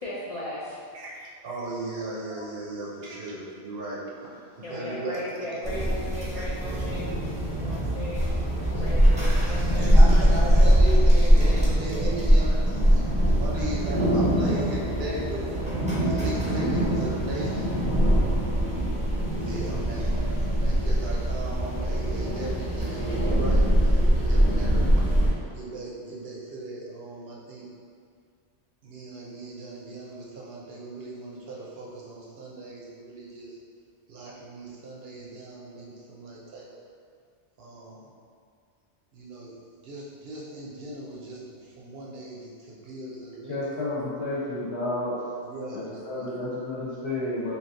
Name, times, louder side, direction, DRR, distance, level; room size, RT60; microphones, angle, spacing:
voice 1, 0.0-0.8 2.3-2.4 4.6-7.1 7.6-8.4 8.7-10.4, left 1 dB, 50° left, -8 dB, 0.4 m, -37 dB
voice 2, 0.9-5.2 6.3-6.5 9.1-15.5 16.0-17.7 19.4-25.2 25.5-27.7 28.8-33.6 34.1-36.8 37.6-38.1 39.1-43.6 45.4-46.1, right 2 dB, 65° right, -4 dB, 0.8 m, -37 dB
sound 1, 5.6-25.3, equal, 10° right, 0.5 m, -22 dB
voice 3, 43.5-45.2 45.7-47.6, left 2 dB, 70° left, -8 dB, 1.1 m, -31 dB
3.2 x 2.7 x 2.6 m, 2.2 s
omnidirectional pair, 1.2 m